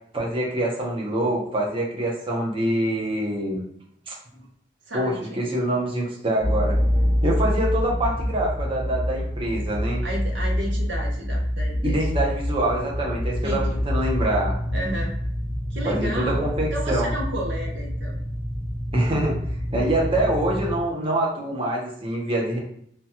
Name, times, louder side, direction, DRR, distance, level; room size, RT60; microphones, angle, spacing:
voice 1, 0.1-3.6 4.1-4.2 4.9-6.8 7.2-10.0 11.8-14.6 15.8-17.1 18.9-19.4 19.7-22.6, right 1 dB, 30° right, -2 dB, 0.7 m, -25 dB
voice 2, 4.9-5.4 10.0-12.0 13.4-13.8 14.7-15.1 15.7-18.1, equal, 75° right, -2 dB, 0.8 m, -32 dB
sound 1, 6.4-20.8, equal, 15° left, 0.8 m, -26 dB
3.0 x 2.3 x 2.8 m, 0.69 s
head